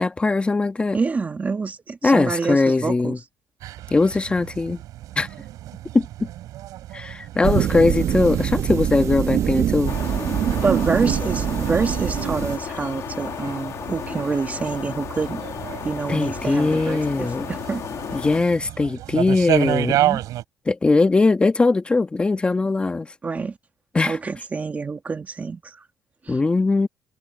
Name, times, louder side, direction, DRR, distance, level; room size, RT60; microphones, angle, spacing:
voice 1, 0.0-1.0 2.0-3.2 3.9-4.8 5.2-5.3 5.9-6.3 6.9-9.9 16.1-17.5 18.1-20.0 20.6-23.1 23.9-24.2 26.3-26.9, left 3 dB, 20° left, 1.6 m, -20 dB
voice 2, 0.9-3.2 10.6-15.4 15.8-17.8 19.9-20.2 23.2-23.6 24.0-25.8 26.2-26.4, right 4 dB, 25° right, 1.7 m, -27 dB
sound 1, 3.6-20.4, right 14 dB, 80° right, 6.4 m, -31 dB
sound 2, 7.4-12.6, right 10 dB, 55° right, 1.0 m, -23 dB
sound 3, 9.9-18.4, left 9 dB, 55° left, 1.4 m, -33 dB
cardioid pair, 125°, 6 cm